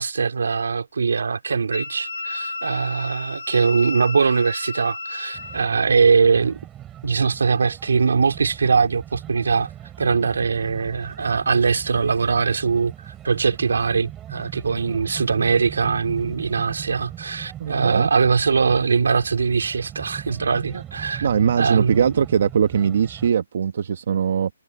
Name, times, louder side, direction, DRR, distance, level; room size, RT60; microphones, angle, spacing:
voice 1, 0.0-6.6 7.0-9.7 10.0-21.3 21.6-22.1, right 5 dB, 65° right, 3.3 m, -21 dB
Wind instrument woodwind instrument, 1.7-5.7, left 4 dB, 90° left, 4.1 m, -32 dB
sound 1, 5.3-23.3, right 11 dB, 10° right, 4.3 m, -39 dB
voice 2, 17.6-18.1 21.2-24.5, right 7 dB, 40° right, 1.3 m, -21 dB
hypercardioid pair, 180°, 0 cm